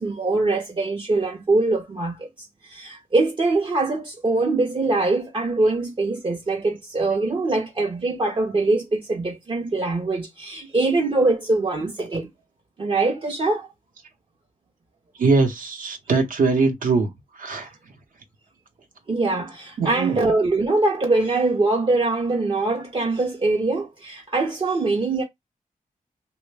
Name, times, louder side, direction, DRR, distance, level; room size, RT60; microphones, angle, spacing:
voice 1, 0.0-2.3 2.6-12.3 12.8-13.7 19.1-25.2, right 2 dB, 35° right, 0.5 m, -23 dB
voice 2, 15.2-17.1 17.4-17.7 19.8-20.2, right 3 dB, 70° right, 0.8 m, -21 dB
2.9 x 2.1 x 3.3 m
wide cardioid pair, 135°, 14 cm